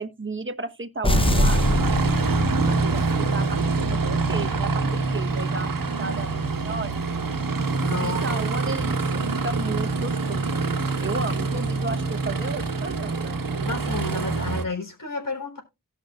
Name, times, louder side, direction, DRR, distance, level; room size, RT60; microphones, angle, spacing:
voice 1, 0.0-1.6 2.6-7.0 8.0-10.5 11.0-13.4, right 3 dB, 35° right, 1.2 m, -34 dB
sound 1, 1.0-2.9, left 1 dB, 15° left, 0.8 m, -23 dB
Aircraft, 1.1-14.6, right 3 dB, 65° right, 1.5 m, -25 dB
voice 2, 7.8-8.4 13.6-15.6, left 3 dB, 60° left, 4.0 m, -31 dB
16.5 x 5.8 x 2.5 m
cardioid pair, 40°, 36 cm